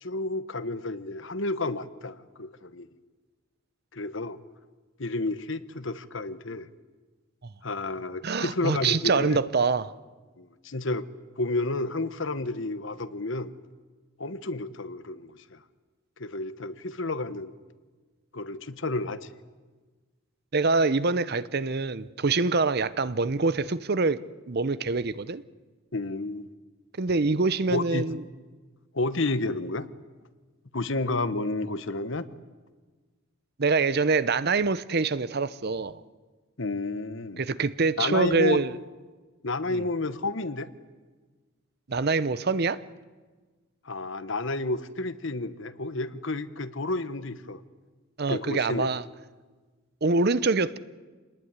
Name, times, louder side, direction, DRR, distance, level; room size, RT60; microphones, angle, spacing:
voice 1, 0.0-2.9 3.9-4.4 5.0-6.7 7.6-9.4 10.4-11.1 11.4-13.5 14.2-15.4 16.2-17.5 18.3-19.3 25.9-26.5 27.7-28.0 28.9-29.9 30.7-32.2 36.6-37.4 38.0-38.6 39.4-40.7 43.8-47.6 48.3-48.9, left 2 dB, 60° left, 1.2 m, -31 dB
voice 2, 8.2-9.9 20.5-24.2 24.5-25.4 27.0-28.2 33.6-36.0 37.4-38.8 39.7-39.9 41.9-42.8 48.2-49.1 50.0-50.8, right 4 dB, 50° right, 0.7 m, -25 dB
27.5 x 20.0 x 9.6 m
head